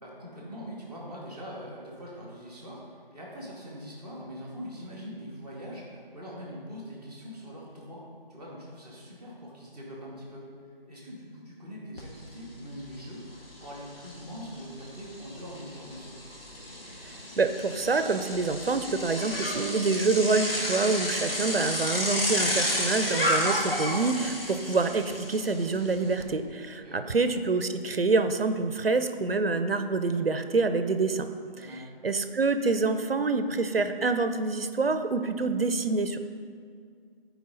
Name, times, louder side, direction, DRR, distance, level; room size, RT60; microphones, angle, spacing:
voice 1, 0.0-8.0 8.3-10.5 10.9-16.2 26.8-27.2 31.6-31.8, equal, 5° left, -10 dB, 1.0 m, -42 dB
Bicycle, 12.0-12.1 12.4-26.2, left 1 dB, 70° left, 1.9 m, -32 dB
voice 2, 17.4-31.3 31.6-31.7 32.0-36.2, right 3 dB, 75° right, 9 dB, 0.7 m, -26 dB
13.5 x 4.7 x 4.0 m, 2.2 s
figure-of-eight pair, 155°, 29 cm